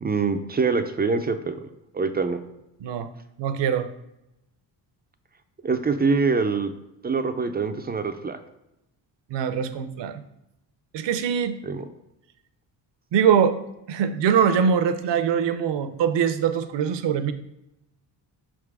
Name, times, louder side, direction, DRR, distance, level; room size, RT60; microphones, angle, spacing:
voice 1, 0.0-1.5 1.9-2.4 5.6-6.7 7.0-8.4 11.6-11.8, right 4 dB, 20° right, 8 dB, 0.4 m, -24 dB
voice 2, 3.4-3.9 9.3-10.2 10.9-11.6 13.1-13.6 13.9-17.3, right 7 dB, 65° right, 11 dB, 0.7 m, -22 dB
5.9 x 3.7 x 4.7 m, 0.88 s
cardioid pair, 90°, 47 cm